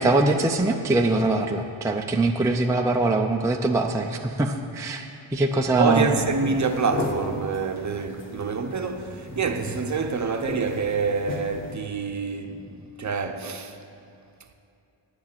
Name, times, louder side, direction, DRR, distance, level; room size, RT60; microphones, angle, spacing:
voice 1, 0.0-6.1, right 2 dB, 5° right, 0.4 m, -23 dB
voice 2, 5.8-13.8, right 4 dB, 35° right, 0.7 m, -27 dB
sound 1, 5.9-11.7, left 1 dB, 25° left, 1.5 m, -34 dB
9.7 x 7.2 x 9.1 m
wide cardioid pair, 155°, 48 cm